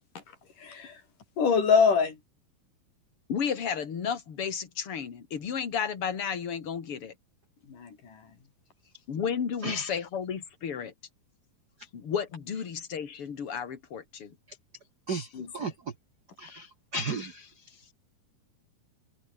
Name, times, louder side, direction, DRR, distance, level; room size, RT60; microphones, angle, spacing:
voice 1, 0.6-1.0 1.4-2.2 7.7-8.2 15.1-15.7, left 6 dB, 60° left, 5.4 m, -25 dB
voice 2, 3.3-7.1 9.1-10.9 11.9-14.4, left 7 dB, 40° left, 3.1 m, -32 dB
voice 3, 9.6-10.0 15.1-15.7 16.4-17.9, right 3 dB, 75° right, 0.9 m, -35 dB
omnidirectional pair, 4.3 m